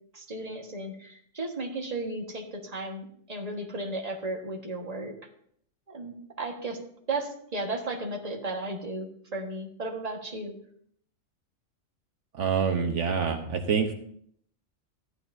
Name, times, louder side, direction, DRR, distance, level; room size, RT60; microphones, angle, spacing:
voice 1, 0.1-5.1 5.9-6.8 7.1-10.5, right 2 dB, 30° right, 1 dB, 1.6 m, -34 dB
voice 2, 12.3-13.9, right 6 dB, 75° right, 4 dB, 1.3 m, -26 dB
14.5 x 11.5 x 2.7 m, 0.66 s
omnidirectional pair, 1.3 m